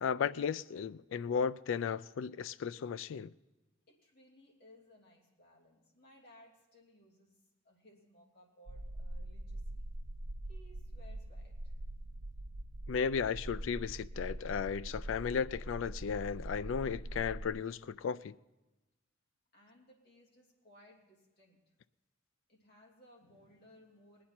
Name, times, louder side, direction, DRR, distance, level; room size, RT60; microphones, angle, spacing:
voice 1, 0.0-3.3 12.9-18.3, left 6 dB, 70° left, 0.3 m, -35 dB
voice 2, 3.9-7.4 7.6-9.8 10.5-11.8 19.5-21.6 22.5-24.2, equal, 50° left, 2.9 m, -61 dB
sound 1, 8.7-17.5, right 1 dB, 85° right, 0.8 m, -43 dB
20.0 x 9.4 x 4.3 m
head